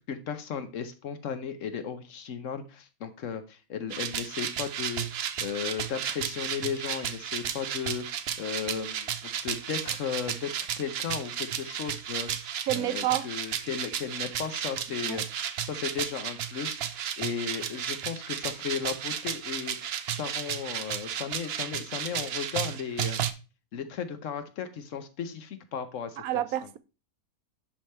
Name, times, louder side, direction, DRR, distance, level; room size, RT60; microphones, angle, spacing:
voice 1, 0.1-15.3 15.6-23.2 23.7-26.2, left 7 dB, 65° left, 1.1 m, -35 dB
sound 1, 3.9-23.3, right 9 dB, 60° right, 0.7 m, -33 dB
voice 2, 12.7-13.3 15.0-15.2 26.2-26.8, right 13 dB, 80° right, 1.1 m, -29 dB
10.5 x 3.4 x 4.3 m
omnidirectional pair, 1.5 m